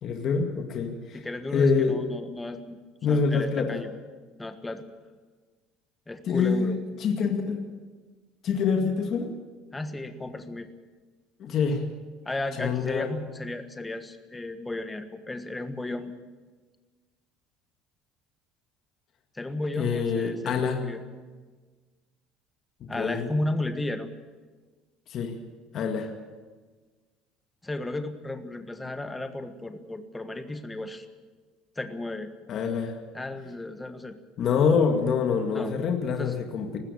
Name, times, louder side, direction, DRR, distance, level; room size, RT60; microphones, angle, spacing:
voice 1, 0.0-1.2 1.5-2.0 3.0-3.8 6.3-6.7 7.0-7.6 8.4-9.3 11.4-11.8 12.6-13.1 19.8-20.8 22.8-23.3 25.1-25.3 25.7-26.1 32.5-33.0 34.4-36.8, left 5 dB, 40° left, 4 dB, 2.2 m, -25 dB
voice 2, 1.1-2.8 3.1-3.9 4.4-4.8 6.1-6.8 9.7-10.7 12.2-16.1 19.3-21.0 22.9-24.1 27.6-31.1 31.8-32.3 33.1-34.2 35.5-35.8 36.2-36.3, left 2 dB, 10° left, 8 dB, 1.4 m, -34 dB
20.0 x 15.5 x 8.6 m, 1.4 s
cardioid pair, 155°, 0 cm